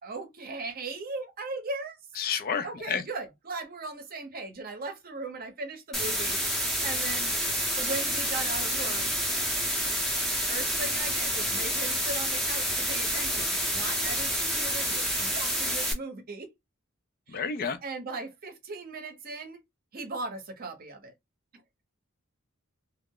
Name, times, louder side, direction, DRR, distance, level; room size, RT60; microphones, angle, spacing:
voice 1, 0.0-2.0 2.6-7.3 7.8-9.1 10.5-16.5 17.3-17.5 17.8-19.6 19.9-21.1, right 3 dB, 45° right, 0.7 m, -38 dB
voice 2, 2.2-3.0 17.3-17.8, left 6 dB, 45° left, 0.4 m, -30 dB
sound 1, 5.9-15.9, equal, ahead, 0.6 m, -28 dB
2.3 x 2.0 x 3.6 m
head